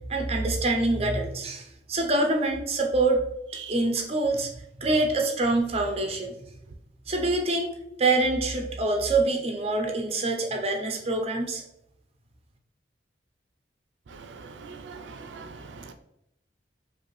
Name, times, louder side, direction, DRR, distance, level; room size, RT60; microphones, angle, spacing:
voice 1, 0.1-3.2 3.7-4.5 4.8-6.3 7.1-7.7 8.0-11.6, right 2 dB, 35° right, 2 dB, 0.6 m, -25 dB
voice 2, 14.4-15.9, right 4 dB, 80° right, 7 dB, 0.4 m, -42 dB
5.1 x 2.5 x 3.1 m, 0.79 s
head